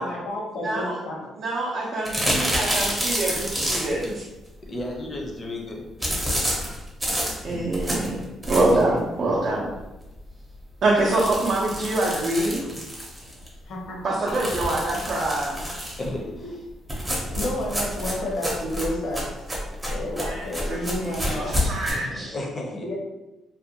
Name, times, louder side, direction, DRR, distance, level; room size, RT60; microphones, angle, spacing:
voice 1, 0.0-1.3 13.2-14.3 14.6-15.2 16.4-16.5 17.3-19.2 19.9-21.6 22.8-23.0, left 1 dB, 80° left, -2 dB, 0.8 m, -31 dB
voice 2, 0.6-1.0 1.4-4.2 7.4-9.7 10.8-12.6 14.0-15.6 20.2-22.3, right 2 dB, 50° right, -4 dB, 0.5 m, -25 dB
sound 1, 2.0-4.1 6.0-8.9 9.4-9.5 9.8-9.9 10.2-10.3 11.0-13.5 14.3-16.1 16.9-21.9, equal, 10° right, 0.6 m, -28 dB
voice 3, 4.7-6.3 12.6-12.9 16.0-16.6 22.1-22.9, left 1 dB, 30° left, 0 dB, 0.5 m, -34 dB
2.4 x 2.2 x 2.7 m, 1.0 s
cardioid pair, 125°, 0 cm